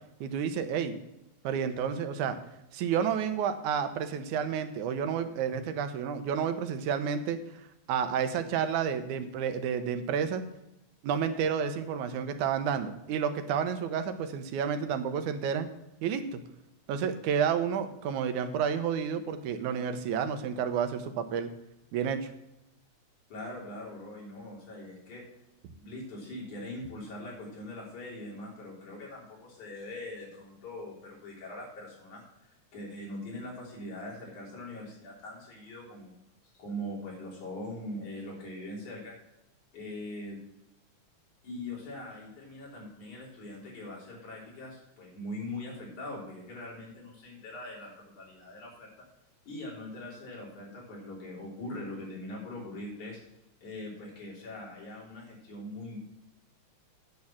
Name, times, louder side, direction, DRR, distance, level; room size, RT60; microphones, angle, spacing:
voice 1, 0.2-1.0 1.4-2.4 2.7-7.4 7.9-10.4 11.0-15.7 16.0-16.4 16.9-21.5 21.9-22.3, right 7 dB, 85° right, 9 dB, 2.3 m, -30 dB
voice 2, 23.3-25.2 25.8-36.1 36.5-39.1 39.7-40.4 41.4-49.1 49.5-53.2 53.6-56.0, left 1 dB, 80° left, -3 dB, 4.8 m, -42 dB
9.3 x 6.6 x 7.1 m, 0.89 s
omnidirectional pair, 3.4 m